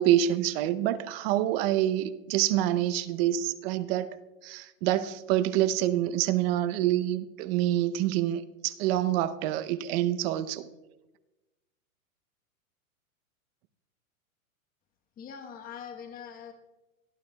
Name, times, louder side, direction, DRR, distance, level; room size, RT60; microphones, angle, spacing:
voice 1, 0.0-4.2 4.4-10.7, right 12 dB, 45° right, 12 dB, 0.8 m, -27 dB
voice 2, 15.2-16.5, left 7 dB, 20° left, 4 dB, 1.2 m, -42 dB
21.0 x 13.0 x 2.3 m, 1.1 s
hypercardioid pair, 130°, 43 cm